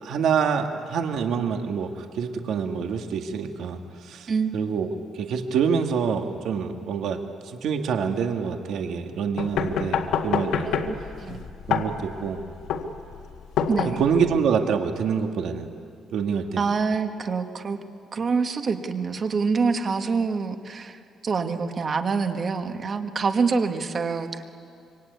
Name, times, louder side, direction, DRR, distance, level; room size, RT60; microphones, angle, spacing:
voice 1, 0.0-10.7 11.7-12.4 14.0-15.7 16.1-16.6, right 6 dB, 65° right, 5 dB, 1.8 m, -26 dB
sound 1, 9.4-14.4, left 6 dB, 70° left, 2.0 m, -27 dB
voice 2, 10.6-11.0 11.2-11.4 13.7-14.0 16.6-17.8 18.1-24.5, right 5 dB, 30° right, 6 dB, 1.5 m, -26 dB
25.5 x 24.5 x 9.5 m, 2.4 s
cardioid pair, 165°, 0 cm